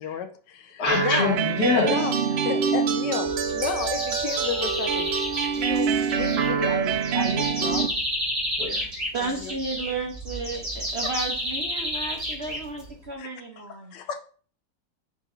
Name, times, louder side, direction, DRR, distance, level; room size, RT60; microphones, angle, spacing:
voice 1, 0.0-2.2 2.4-5.1 5.5-7.9 9.2-9.5 13.2-13.3 13.6-13.7 13.9-14.2, left 8 dB, 80° left, 9 dB, 1.2 m, -32 dB
voice 2, 0.8-2.0 8.6-8.8, left 3 dB, 65° left, 2 dB, 2.0 m, -24 dB
sound 1, 0.9-7.9, right 6 dB, 80° right, 0.5 m, -25 dB
sound 2, 3.3-13.1, equal, 30° right, 2.3 m, -31 dB
voice 3, 9.1-14.0, right 3 dB, 50° right, 2 dB, 0.8 m, -33 dB
11.0 x 4.0 x 2.6 m, 0.41 s
omnidirectional pair, 1.9 m